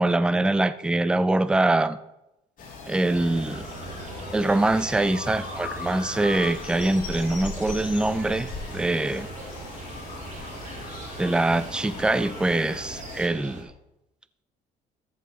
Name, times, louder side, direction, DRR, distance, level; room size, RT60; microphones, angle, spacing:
voice 1, 0.0-2.0 2.9-3.7 4.3-9.3 11.1-13.7, right 2 dB, 5° right, 0.3 m, -24 dB
sound 1, 2.6-13.3, left 4 dB, 50° left, 2.8 m, -39 dB
sound 2, 3.1-13.6, right 3 dB, 45° right, 1.9 m, -41 dB
sound 3, 3.3-12.0, left 4 dB, 80° left, 2.6 m, -48 dB
13.5 x 7.3 x 3.0 m
cardioid pair, 110°, 17 cm